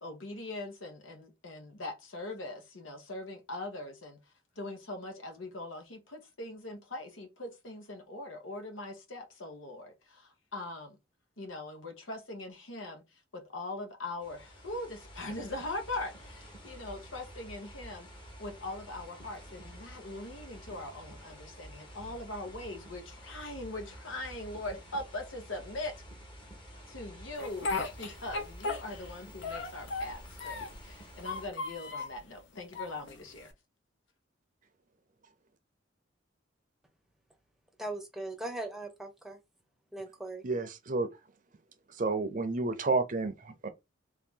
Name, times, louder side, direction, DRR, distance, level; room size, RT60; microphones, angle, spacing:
voice 1, 0.0-11.0 11.4-18.1 18.4-26.0 26.9-33.5, left 2 dB, 90° left, 1.2 m, -41 dB
sound 1, 14.2-31.5, equal, 25° left, 1.0 m, -50 dB
Speech, 27.4-29.1 29.4-30.8 31.2-32.2 32.7-33.5, left 3 dB, 70° left, 0.8 m, -36 dB
voice 2, 37.8-39.4 39.9-40.4, right 2 dB, ahead, 0.7 m, -39 dB
voice 3, 40.4-41.1 42.0-43.7, right 3 dB, 40° right, 0.6 m, -30 dB
3.2 x 2.8 x 3.7 m
head